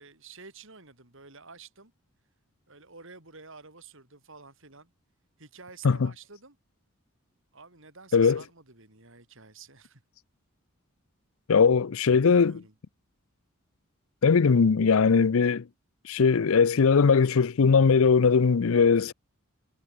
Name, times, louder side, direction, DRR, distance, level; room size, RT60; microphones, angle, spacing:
voice 1, 0.0-1.9 2.7-4.9 5.4-6.6 7.5-10.0 12.2-12.7, right 4 dB, 60° right, 4.9 m, -50 dB
voice 2, 11.5-12.6 14.2-15.6 16.0-19.1, left 5 dB, 65° left, 0.5 m, -20 dB
head